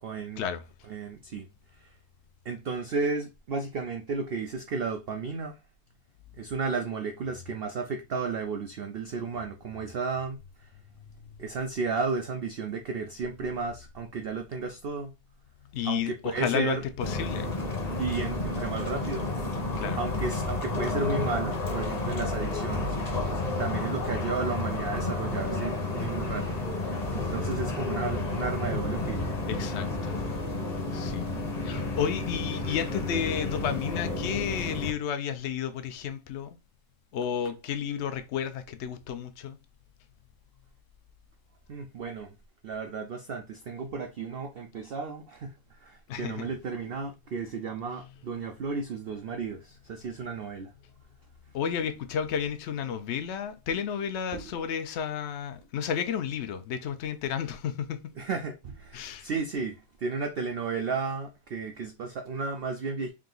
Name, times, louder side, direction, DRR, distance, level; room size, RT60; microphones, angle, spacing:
voice 1, 0.0-0.5 0.9-1.5 1.8-1.9 2.4-5.6 6.4-10.7 11.4-15.1 15.8-16.8 18.0-19.3 20.0-23.0 23.6-29.3 41.7-42.4 42.6-50.7 54.3-54.4 58.2-63.1, right 4 dB, 90° right, 0.5 m, -33 dB
voice 2, 15.7-17.5 19.7-20.0 29.5-30.2 30.9-31.3 31.6-36.6 37.1-39.6 46.1-46.5 51.5-58.1 58.9-59.3, left 8 dB, 70° left, 0.7 m, -32 dB
sound 1, 17.0-34.9, left 2 dB, 30° left, 0.9 m, -31 dB
3.6 x 2.8 x 3.8 m
omnidirectional pair, 1.6 m